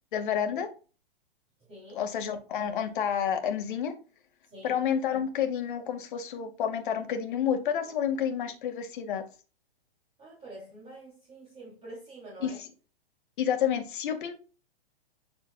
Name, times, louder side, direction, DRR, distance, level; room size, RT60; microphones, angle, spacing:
voice 1, 0.1-0.7 1.9-3.9 4.6-9.2 12.4-12.5 13.4-14.3, left 8 dB, 55° left, 2.0 m, -29 dB
voice 2, 1.7-2.0 4.4-4.8 10.2-12.6, right 2 dB, 20° right, 3.4 m, -46 dB
9.6 x 6.6 x 2.4 m
hypercardioid pair, 120°, 30 cm